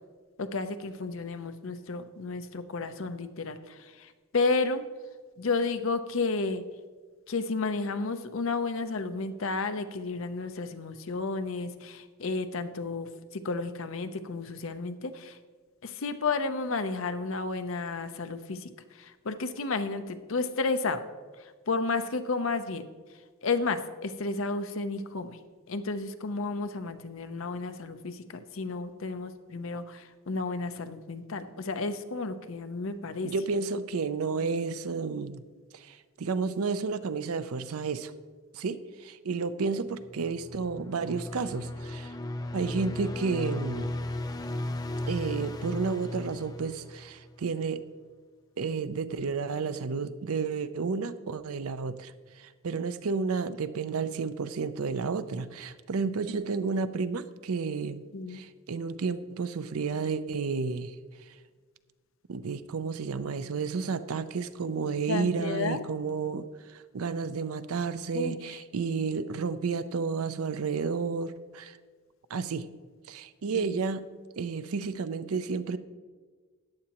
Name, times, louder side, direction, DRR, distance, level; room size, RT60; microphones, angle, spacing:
voice 1, 0.4-4.8 5.4-6.6 7.3-15.4 15.8-21.0 21.7-22.8 23.4-25.4 25.7-33.3 58.1-58.4 65.1-65.8 68.1-68.4 73.5-73.8, left 3 dB, 65° left, 9 dB, 0.7 m, -32 dB
voice 2, 33.2-35.4 35.7-38.1 38.5-42.1 42.5-43.9 45.1-47.8 48.6-58.0 58.3-61.0 61.3-61.4 62.3-71.8 72.3-72.7 73.1-74.0 74.4-75.8, right 5 dB, 90° right, 13 dB, 0.5 m, -31 dB
sound 1, 40.0-47.3, left 1 dB, 20° left, 0.5 m, -36 dB
14.0 x 9.5 x 3.0 m, 1.5 s
head